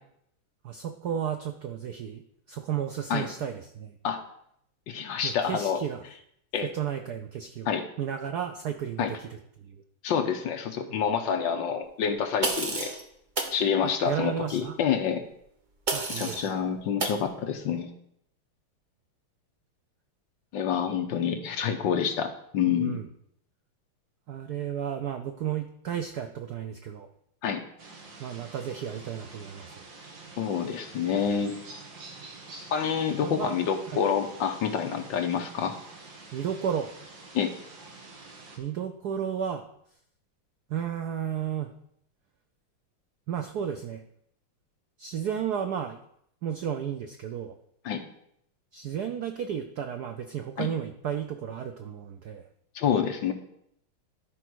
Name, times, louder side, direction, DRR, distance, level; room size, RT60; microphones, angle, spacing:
voice 1, 0.6-2.2 2.5-3.9 5.2-6.0 6.6-9.8 13.8-14.8 15.9-16.6 22.8-23.1 24.3-27.1 28.2-29.7 33.2-33.6 33.9-34.0 36.3-36.9 38.6-39.6 40.7-41.7 43.3-44.0 45.0-46.0 46.4-47.6 48.7-52.4, right 8 dB, 75° right, 7 dB, 0.9 m, -33 dB
voice 2, 4.9-5.8 6.5-6.7 7.7-7.8 9.0-9.1 10.0-12.9 13.5-15.2 16.1-17.9 20.5-23.0 27.4-27.6 30.4-31.5 32.7-35.7 37.3-37.5 47.8-48.0 50.6-50.7 52.7-53.3, left 7 dB, 65° left, 6 dB, 1.4 m, -27 dB
sound 1, 12.4-13.0 13.4-13.6 15.9-16.5 17.0-17.2, right 2 dB, 35° right, 0.7 m, -30 dB
sound 2, 27.8-38.6, right 3 dB, 60° right, 2.3 m, -47 dB
12.0 x 4.7 x 6.2 m, 0.72 s
omnidirectional pair, 2.4 m